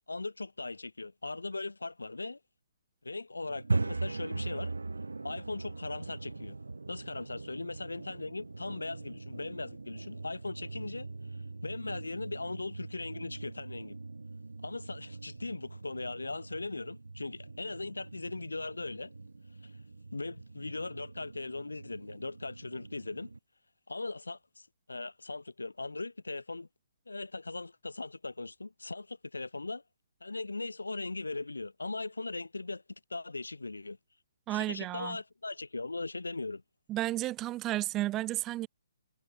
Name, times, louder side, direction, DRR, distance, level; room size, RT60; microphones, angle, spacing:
voice 1, 0.1-2.4 3.0-4.7 5.2-6.6 6.9-11.1 11.6-14.0 14.6-19.1 19.6-19.7 20.1-23.3 23.9-26.7 27.1-29.8 30.2-32.8 33.1-34.0 34.5-36.6, left 3 dB, 85° left, 4.9 m, -39 dB
sound 1, 3.5-23.4, right 3 dB, 80° right, 5.7 m, -41 dB
voice 2, 34.5-35.2 36.9-38.7, right 15 dB, 20° right, 1.9 m, -32 dB
figure-of-eight pair, 135°, 0 cm